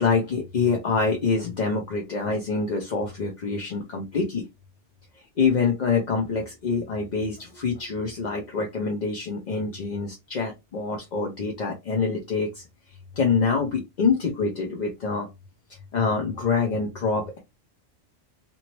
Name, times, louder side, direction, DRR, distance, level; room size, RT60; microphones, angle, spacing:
voice 1, 0.0-4.4 5.4-12.6 13.2-15.3 15.9-17.4, left 4 dB, 50° left, 1 dB, 0.6 m, -25 dB
2.9 x 2.6 x 2.9 m, 0.21 s
omnidirectional pair, 1.2 m